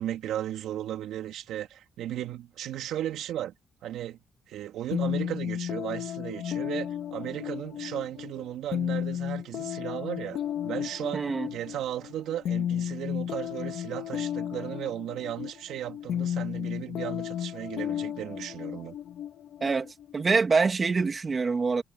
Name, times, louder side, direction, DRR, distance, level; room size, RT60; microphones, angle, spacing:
voice 1, 0.0-3.5 3.8-4.2 4.5-19.0, right 12 dB, 80° right, 3.5 m, -35 dB
sound 1, 4.9-20.5, left 10 dB, 70° left, 3.2 m, -33 dB
voice 2, 11.1-11.5 19.6-21.8, right 4 dB, 35° right, 2.8 m, -25 dB
cardioid pair, 90°, 0 cm